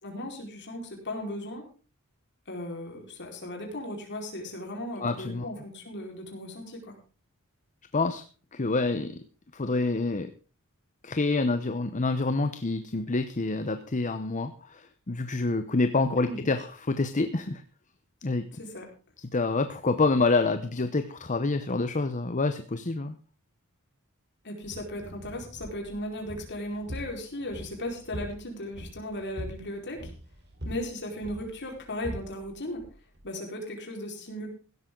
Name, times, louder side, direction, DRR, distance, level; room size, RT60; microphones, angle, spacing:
voice 1, 0.0-1.6 2.5-6.9 16.2-16.4 18.6-18.9 24.4-30.1 30.6-32.9 33.2-34.5, left 1 dB, 55° left, 1 dB, 4.7 m, -36 dB
voice 2, 5.0-5.5 7.9-8.2 8.5-9.2 9.5-10.3 11.0-17.6 18.2-18.5 19.2-23.2, left 3 dB, 35° left, 9 dB, 0.9 m, -27 dB
sound 1, 24.6-33.3, equal, 50° right, 3.8 m, -43 dB
16.5 x 12.5 x 3.9 m, 0.36 s
head